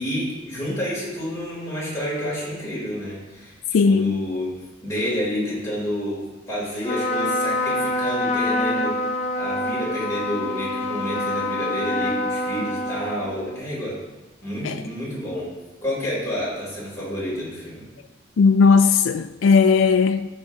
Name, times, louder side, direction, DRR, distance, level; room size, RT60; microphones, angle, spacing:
voice 1, 0.0-3.5 3.8-4.5 4.8-9.1 9.4-14.0 14.4-15.5 15.8-17.9, equal, 15° left, 3.5 m, -29 dB
voice 2, 3.7-4.2 14.6-14.8 18.4-20.3, left 5 dB, 85° left, 0.4 m, -17 dB
Trumpet, 6.8-13.6, left 2 dB, 35° left, 0.9 m, -26 dB
15.5 x 5.5 x 2.9 m
head